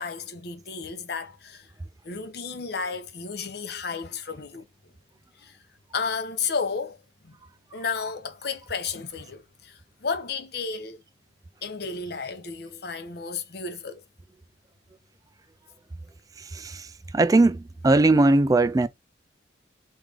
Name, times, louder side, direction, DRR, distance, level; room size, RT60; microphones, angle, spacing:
voice 1, 0.0-1.7 2.0-4.6 5.4-5.6 5.9-7.0 7.2-7.4 7.7-11.0 11.6-14.0, left 5 dB, 60° left, 0.8 m, -32 dB
voice 2, 17.1-18.9, right 2 dB, 20° right, 0.3 m, -19 dB
3.5 x 3.2 x 3.6 m
head